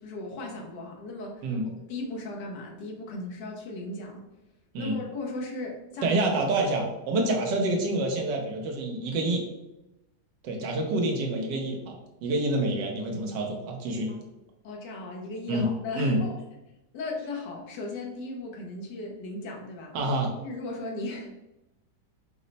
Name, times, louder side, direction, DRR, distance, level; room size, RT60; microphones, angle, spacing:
voice 1, 0.0-4.2 4.8-6.2 14.1-14.2 14.6-16.4 16.9-20.0 20.4-21.3, left 2 dB, 80° left, -1 dB, 1.4 m, -37 dB
voice 2, 6.0-9.4 10.4-14.1 15.5-15.7 15.9-16.2 19.9-20.3, right 2 dB, 90° right, 1 dB, 1.5 m, -27 dB
5.3 x 2.0 x 3.9 m, 0.94 s
omnidirectional pair, 1.8 m